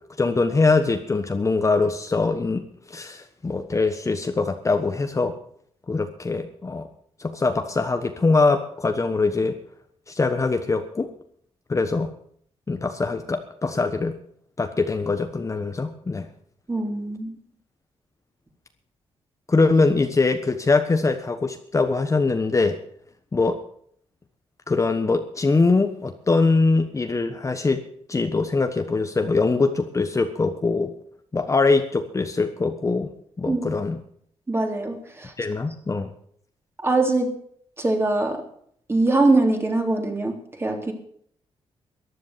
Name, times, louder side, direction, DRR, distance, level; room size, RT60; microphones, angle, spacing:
voice 1, 0.2-2.6 2.9-5.3 5.9-6.9 7.2-9.6 10.1-11.1 11.7-12.1 12.7-14.1 14.6-16.3 19.5-22.8 23.3-23.6 24.7-27.8 28.1-30.9 31.3-33.1 33.4-34.0 35.4-36.1, left 3 dB, 25° left, 6 dB, 1.3 m, -22 dB
voice 2, 16.7-17.4 33.5-33.6 34.5-35.3 36.8-37.3 37.8-38.4 38.9-40.9, right 2 dB, 20° right, 3 dB, 3.4 m, -22 dB
14.5 x 10.5 x 6.9 m, 0.63 s
cardioid pair, 100°, 11 cm